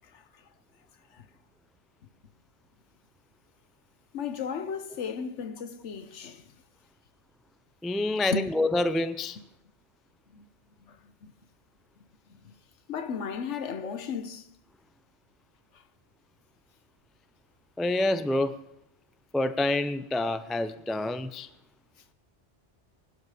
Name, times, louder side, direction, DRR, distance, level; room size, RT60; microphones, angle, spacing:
voice 1, 0.0-0.5 1.1-1.3 4.1-6.6 8.3-8.5 10.3-10.5 10.9-11.3 12.3-12.6 12.9-14.5 15.7-15.8, left 6 dB, 85° left, 1.3 m, -35 dB
voice 2, 7.8-9.4 17.8-18.5 19.3-21.5, left 2 dB, ahead, 0.3 m, -27 dB
20.0 x 12.0 x 5.0 m
omnidirectional pair, 1.2 m